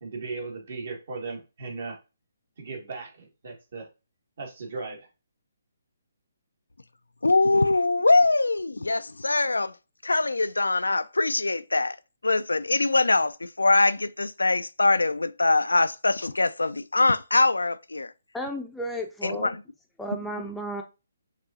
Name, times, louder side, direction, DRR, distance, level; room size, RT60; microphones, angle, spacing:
voice 1, 0.0-2.0 2.6-3.9 4.4-5.1, right 3 dB, 55° right, 1.8 m, -37 dB
voice 2, 7.2-9.7 10.0-12.0 12.2-18.1 19.2-19.6, left 2 dB, 85° left, 0.3 m, -23 dB
voice 3, 18.3-19.5 20.0-20.8, equal, 5° left, 0.5 m, -33 dB
6.0 x 2.7 x 2.7 m
figure-of-eight pair, 140°, 0 cm